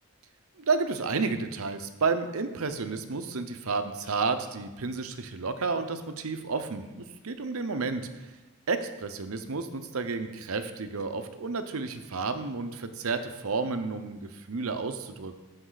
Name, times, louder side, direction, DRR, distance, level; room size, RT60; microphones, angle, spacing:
voice 1, 0.6-8.1 8.7-15.4, right 4 dB, 80° right, 9 dB, 0.7 m, -31 dB
14.5 x 5.3 x 4.0 m, 1.1 s
head